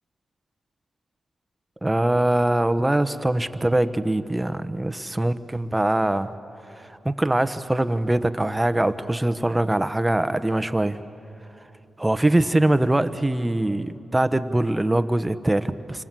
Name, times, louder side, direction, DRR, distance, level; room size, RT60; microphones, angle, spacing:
voice 1, 1.8-6.3 6.8-11.0 12.0-16.0, right 1 dB, 15° right, 11 dB, 1.1 m, -23 dB
28.5 x 25.5 x 7.6 m, 3.0 s
cardioid pair, 60°, 0 cm